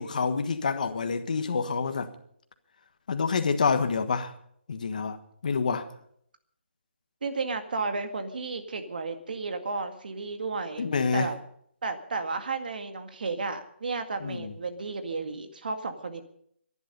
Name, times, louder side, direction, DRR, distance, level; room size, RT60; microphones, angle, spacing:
voice 1, 0.0-2.1 3.1-4.3 4.7-5.2 5.4-5.8 10.8-11.3 14.2-14.5, left 5 dB, 40° left, 1.5 m, -27 dB
voice 2, 7.2-10.9 11.1-11.4 11.8-16.2, right 4 dB, 50° right, 2.0 m, -33 dB
22.5 x 11.0 x 5.4 m
hypercardioid pair, 175°, 6 cm